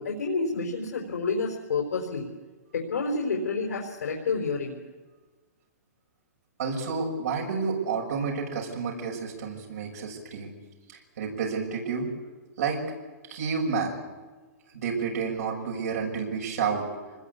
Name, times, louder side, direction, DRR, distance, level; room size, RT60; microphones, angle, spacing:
voice 1, 0.0-2.3 2.7-4.8, left 4 dB, 85° left, 0 dB, 4.6 m, -29 dB
voice 2, 6.6-10.5 10.9-12.1 12.6-12.8 13.3-14.0 14.7-16.9, right 5 dB, 70° right, -1 dB, 6.7 m, -30 dB
25.5 x 20.5 x 8.5 m, 1.3 s
hypercardioid pair, 145°, 9 cm